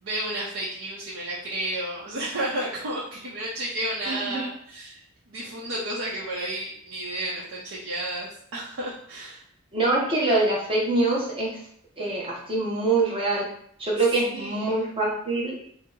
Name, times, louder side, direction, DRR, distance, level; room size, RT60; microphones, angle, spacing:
voice 1, 0.0-5.0 5.3-9.4 14.2-14.8, right 1 dB, 85° right, -7 dB, 0.6 m, -32 dB
voice 2, 4.1-4.4 9.7-11.6 12.0-13.5 13.8-15.6, right 2 dB, 25° right, -4 dB, 0.7 m, -24 dB
2.7 x 2.0 x 3.6 m, 0.65 s
head